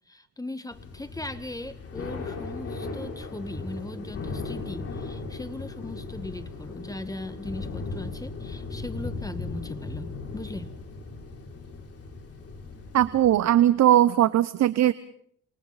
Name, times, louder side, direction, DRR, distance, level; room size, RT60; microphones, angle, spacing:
voice 1, 0.1-10.7, left 2 dB, 10° left, 11 dB, 1.6 m, -39 dB
Thunder / Rain, 0.7-13.6, left 3 dB, 50° left, 5.9 m, -37 dB
voice 2, 12.9-14.9, right 12 dB, 60° right, 15 dB, 0.8 m, -19 dB
28.0 x 28.0 x 4.2 m, 0.65 s
cardioid pair, 90°, 30 cm